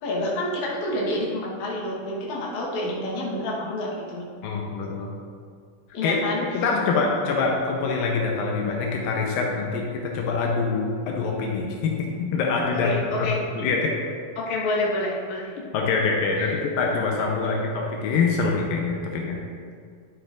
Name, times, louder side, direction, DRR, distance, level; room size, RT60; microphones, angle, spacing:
voice 1, 0.0-4.3 5.9-6.4 12.7-13.4 14.4-15.5 16.4-16.6, left 1 dB, 60° left, -4 dB, 2.4 m, -28 dB
voice 2, 4.4-5.1 6.0-6.2 6.5-14.0 15.7-19.4, left 4 dB, 85° left, 0 dB, 2.5 m, -25 dB
11.0 x 7.3 x 2.5 m, 2.1 s
omnidirectional pair, 4.1 m